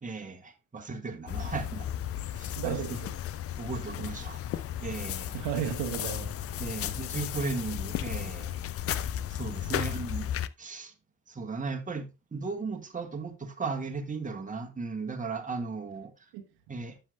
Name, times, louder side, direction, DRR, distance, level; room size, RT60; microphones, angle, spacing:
voice 1, 0.0-1.9 2.3-2.8 3.6-4.4 4.8-5.3 6.6-8.5 9.3-10.3 10.6-10.9 11.3-16.1 16.7-17.0, right 4 dB, 20° right, 1.5 m, -36 dB
sound 1, 1.3-10.5, left 11 dB, 35° left, 0.5 m, -34 dB
voice 2, 2.6-3.1 5.3-6.3 6.6-6.7 9.7-9.8 16.3-16.7, right 8 dB, 60° right, 1.3 m, -34 dB
12.0 x 5.7 x 2.2 m
figure-of-eight pair, 45°, 42 cm